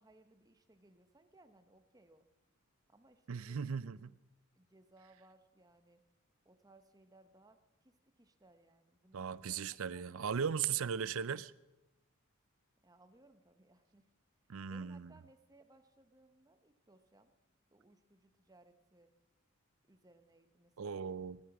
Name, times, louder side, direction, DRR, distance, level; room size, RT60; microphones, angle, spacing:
voice 1, 0.0-2.3 2.9-4.2 4.5-6.0 6.4-9.6 9.9-10.0 10.3-10.7 12.8-14.1 14.7-17.3 17.7-19.1 19.9-21.1, right 2 dB, 15° right, 0.9 m, -65 dB
voice 2, 3.3-4.1 9.1-11.5 14.5-15.1 20.8-21.4, right 7 dB, 65° right, 0.5 m, -37 dB
17.0 x 12.5 x 6.1 m
head